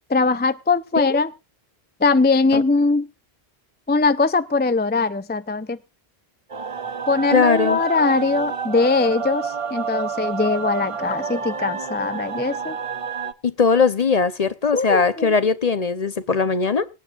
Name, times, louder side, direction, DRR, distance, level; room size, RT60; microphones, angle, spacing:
voice 1, 0.1-1.3 2.0-3.1 3.9-5.8 7.1-12.8 14.7-15.3, left 3 dB, 15° left, 0.4 m, -21 dB
sound 1, 6.5-13.3, right 6 dB, 35° right, 0.7 m, -29 dB
voice 2, 7.3-7.8 13.4-16.9, left 5 dB, 45° left, 0.7 m, -20 dB
sound 2, 7.8-8.1 10.9-11.3, left 9 dB, 65° left, 1.2 m, -41 dB
24.5 x 9.1 x 2.4 m
omnidirectional pair, 1.0 m